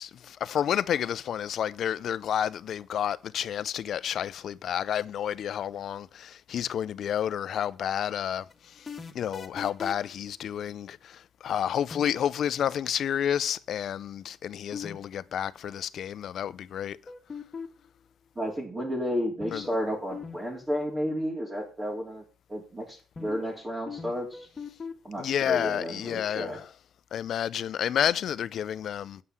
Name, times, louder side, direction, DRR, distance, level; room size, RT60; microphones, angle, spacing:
voice 1, 0.0-8.4 8.8-8.9 9.1-17.0 19.5-19.7 25.2-26.6 27.1-29.2, left 9 dB, 65° left, 0.6 m, -30 dB
sound 1, 8.5-10.2 11.9-12.3 14.7-15.0 15.2-15.3 17.1-17.9 19.4-19.8 20.1-20.4 20.6-20.7 23.2-23.6 23.9-24.9, left 5 dB, 35° left, 2.0 m, -39 dB
voice 2, 18.4-22.2 22.5-24.5 25.0-26.6, equal, 20° right, 3.6 m, -32 dB
8.7 x 5.6 x 8.0 m
cardioid pair, 90°, 0 cm